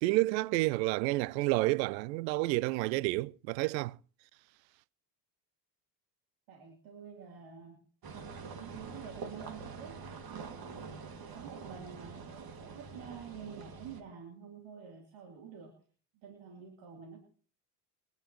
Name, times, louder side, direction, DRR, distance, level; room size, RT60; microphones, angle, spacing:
voice 1, 0.0-4.0, right 20 dB, 90° right, 0.6 m, -30 dB
voice 2, 6.5-7.8 8.1-10.0 10.3-15.7 16.2-17.3, right 7 dB, 65° right, 3.2 m, -49 dB
sound 1, 8.0-14.0, right 5 dB, 45° right, 2.3 m, -45 dB
25.5 x 10.5 x 3.0 m
supercardioid pair, 75°, 50 cm